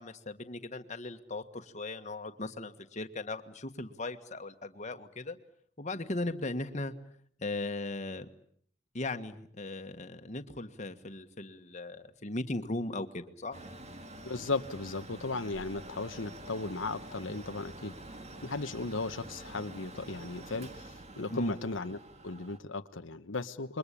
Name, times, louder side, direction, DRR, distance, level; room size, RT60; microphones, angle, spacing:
voice 1, 0.0-5.4 5.8-6.9 7.4-8.2 8.9-13.6 21.3-21.5, left 2 dB, 40° left, 7 dB, 1.6 m, -38 dB
Mechanical fan, 13.5-22.6, right 1 dB, 35° right, 2.2 m, -47 dB
voice 2, 14.2-17.9 18.4-22.0 22.2-23.8, left 3 dB, 90° left, 8 dB, 1.1 m, -36 dB
28.0 x 23.0 x 8.5 m, 0.62 s
head